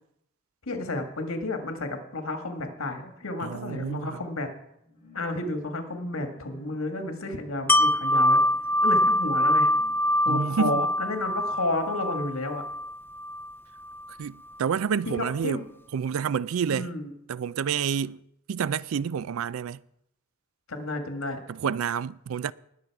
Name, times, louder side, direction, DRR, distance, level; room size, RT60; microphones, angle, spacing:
voice 1, 0.6-4.5 5.1-8.4 8.8-9.7 10.2-12.6 15.0-15.6 16.7-17.1 20.7-21.4, left 2 dB, 80° left, 1.7 m, -31 dB
voice 2, 3.4-4.2 10.3-10.8 14.2-15.6 15.9-16.9 17.3-18.2 18.5-19.8 21.5-22.5, right 7 dB, 75° right, 0.4 m, -29 dB
sound 1, 4.7-12.5 13.0-13.1, left 2 dB, 35° left, 4.5 m, -53 dB
Wind chime, 7.7-13.5 13.9-14.0, left 1 dB, 10° left, 0.4 m, -24 dB
20.0 x 6.7 x 4.7 m
head